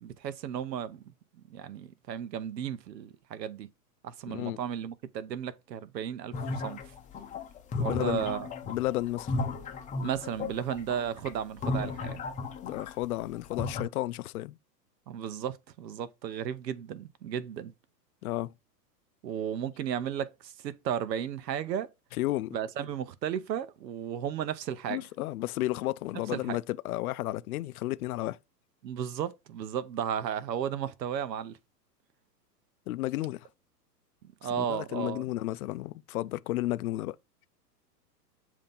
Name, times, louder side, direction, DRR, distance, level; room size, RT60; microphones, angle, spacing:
voice 1, 0.0-1.0 1.5-3.7 4.0-6.8 7.8-8.5 10.0-12.2 15.1-17.7 19.2-21.9 22.5-25.0 26.3-26.6 28.8-31.6 34.4-35.2, right 9 dB, 80° right, 0.9 m, -34 dB
voice 2, 4.3-4.6 7.8-8.3 8.7-9.3 12.6-14.6 18.2-18.5 22.1-22.6 24.9-28.4 32.9-33.5 34.6-37.2, left 16 dB, 60° left, 0.5 m, -32 dB
sound 1, 6.3-13.0 13.4-13.8, left 3 dB, 15° left, 0.7 m, -34 dB
7.4 x 2.9 x 5.3 m
hypercardioid pair, 120°, 50 cm